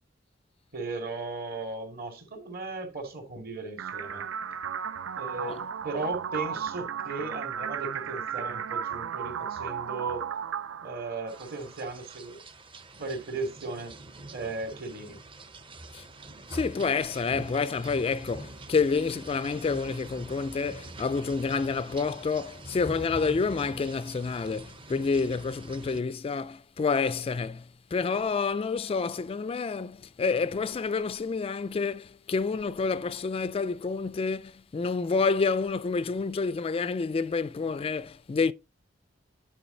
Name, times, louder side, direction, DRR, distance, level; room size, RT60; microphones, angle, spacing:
voice 1, 0.7-4.3 5.2-10.3 10.8-12.4 12.9-13.9 14.3-15.2, right 3 dB, 50° right, 2.4 m, -36 dB
sound 1, 3.8-11.8, right 7 dB, 75° right, 0.4 m, -35 dB
sound 2, 11.3-26.0, right 2 dB, 25° right, 0.7 m, -45 dB
voice 2, 16.5-38.5, left 4 dB, 30° left, 0.3 m, -28 dB
10.0 x 4.8 x 3.8 m
head